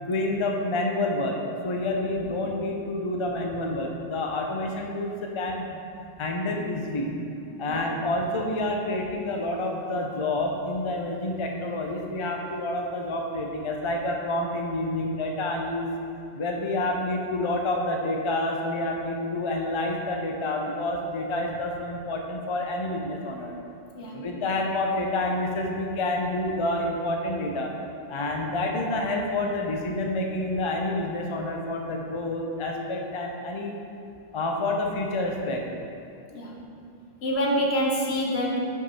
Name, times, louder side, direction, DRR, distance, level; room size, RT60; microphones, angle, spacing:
voice 1, 0.0-1.4 1.6-5.8 6.2-7.1 7.6-15.9 16.3-23.5 24.1-27.7 28.1-33.7 34.3-35.6, left 2 dB, 35° left, 1 dB, 0.5 m, -28 dB
voice 2, 37.2-38.6, equal, 75° left, -2 dB, 1.2 m, -26 dB
5.7 x 4.7 x 5.6 m, 2.5 s
omnidirectional pair, 1.1 m